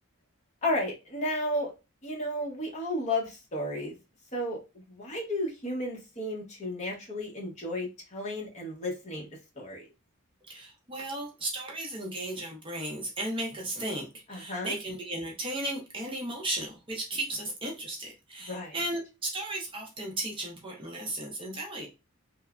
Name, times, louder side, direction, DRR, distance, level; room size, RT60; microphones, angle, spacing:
voice 1, 0.6-1.7 2.0-4.0 4.3-4.6 4.9-9.3 9.6-9.9 14.3-14.8 18.5-18.8, left 1 dB, 30° left, -1 dB, 0.8 m, -33 dB
voice 2, 10.5-21.9, right 1 dB, 25° right, -1 dB, 0.6 m, -35 dB
3.0 x 2.0 x 2.4 m, 0.27 s
head